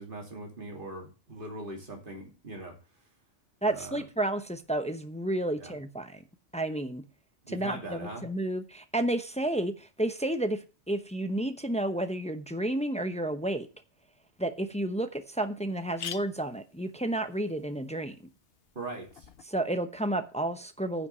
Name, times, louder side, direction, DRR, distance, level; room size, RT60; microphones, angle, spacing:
voice 1, 0.0-2.8 3.7-4.0 5.6-5.7 7.5-8.3 18.7-19.3, right 2 dB, 45° right, 2.9 m, -41 dB
voice 2, 3.6-6.2 6.5-7.0 7.5-10.6 10.9-13.7 14.4-18.2 19.5-21.1, right 1 dB, 5° left, 0.6 m, -31 dB
sound 1, 14.4-14.5 15.0-15.1 15.3-15.4 15.7-19.5, left 8 dB, 60° left, 0.9 m, -46 dB
9.9 x 5.7 x 6.8 m
omnidirectional pair, 1.2 m